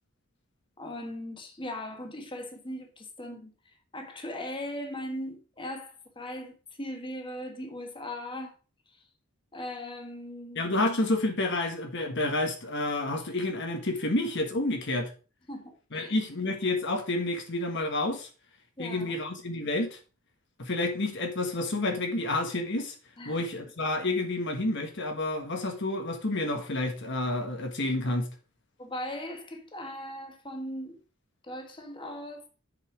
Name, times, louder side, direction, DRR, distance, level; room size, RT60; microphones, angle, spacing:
voice 1, 0.8-8.5 8.9-9.0 9.5-10.6 15.5-16.1 18.8-19.1 23.2-23.4 28.8-31.0 31.4-32.5, left 1 dB, 25° left, 1.5 m, -39 dB
voice 2, 10.5-15.1 15.9-18.3 18.8-20.0 20.6-22.9 23.2-28.3, left 2 dB, 60° left, 1.4 m, -29 dB
7.6 x 5.5 x 5.0 m
head